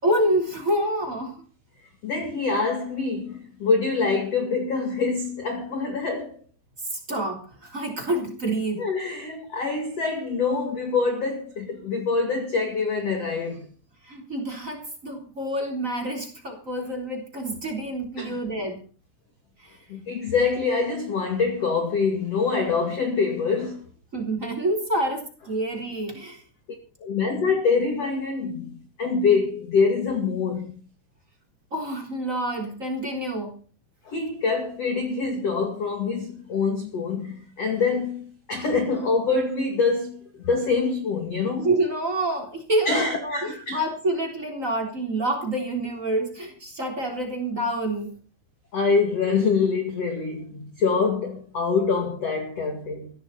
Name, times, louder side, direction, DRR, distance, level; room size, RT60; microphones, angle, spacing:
voice 1, 0.0-1.4 6.9-8.9 14.0-18.8 19.6-19.8 24.1-26.4 31.7-33.5 38.6-38.7 41.6-48.1, right 1 dB, 20° right, 3.3 m, -27 dB
voice 2, 2.0-6.3 8.8-13.7 18.2-18.4 19.9-23.8 27.0-30.7 34.0-41.7 42.9-43.8 48.7-53.1, left 4 dB, 45° left, 2.5 m, -25 dB
17.0 x 15.5 x 4.2 m
omnidirectional pair, 5.7 m